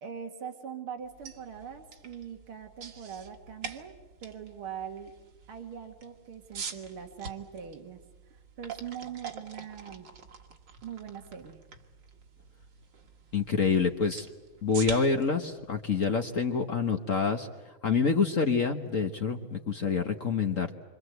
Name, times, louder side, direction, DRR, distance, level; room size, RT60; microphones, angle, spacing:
voice 1, 0.0-3.9 4.2-5.1 5.5-8.0 8.3-10.1 10.8-11.6, right 8 dB, 85° right, 4 dB, 2.7 m, -42 dB
sound 1, 1.0-17.0, right 6 dB, 60° right, 2.3 m, -46 dB
voice 2, 13.3-14.3 14.6-20.7, left 5 dB, 45° left, 5 dB, 1.5 m, -27 dB
27.5 x 26.0 x 8.0 m, 1.2 s
omnidirectional pair, 2.3 m